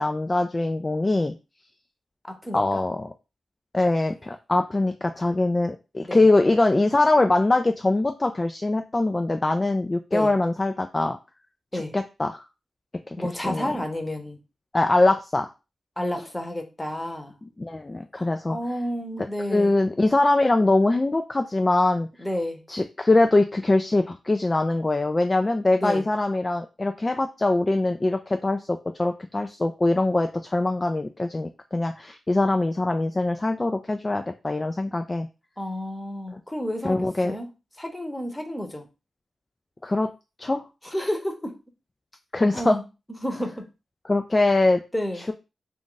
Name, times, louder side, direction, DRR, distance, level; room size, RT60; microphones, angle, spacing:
voice 1, 0.0-1.3 2.5-3.1 3.7-11.2 11.7-12.4 13.2-13.7 14.7-15.5 17.6-18.6 19.5-22.1 22.7-35.3 36.3-36.4 36.8-37.4 39.8-40.1 40.4-40.6 42.3-42.8 44.1-44.8 45.2-45.3, left 2 dB, 30° left, 0.3 m, -23 dB
voice 2, 2.3-2.8 6.0-6.3 10.1-10.3 11.7-11.9 13.2-14.4 16.0-17.4 18.1-19.8 22.2-22.6 25.7-26.1 35.6-37.5 37.8-38.9 40.8-41.5 42.5-43.5 44.9-45.3, left 1 dB, 15° left, 0.9 m, -31 dB
2.5 x 2.4 x 3.8 m
cardioid pair, 50°, 0 cm